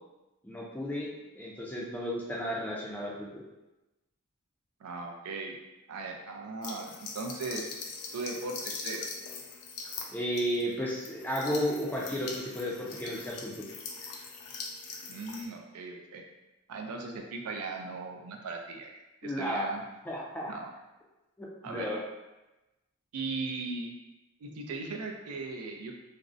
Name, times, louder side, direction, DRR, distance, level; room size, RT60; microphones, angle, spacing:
voice 1, 0.4-3.4 10.1-13.7 19.2-19.6 20.1-20.5 21.4-22.0, equal, 10° left, -4 dB, 0.3 m, -33 dB
voice 2, 4.8-5.6 5.9-7.6 8.1-9.1 15.1-16.2 16.7-18.9 19.2-19.8 20.5-20.7 21.6-21.9 23.1-23.9 24.4-25.9, right 3 dB, 85° right, 2 dB, 0.4 m, -38 dB
sound 1, 6.6-15.5, left 4 dB, 90° left, 0.4 m, -42 dB
2.5 x 2.0 x 2.4 m, 1.0 s
head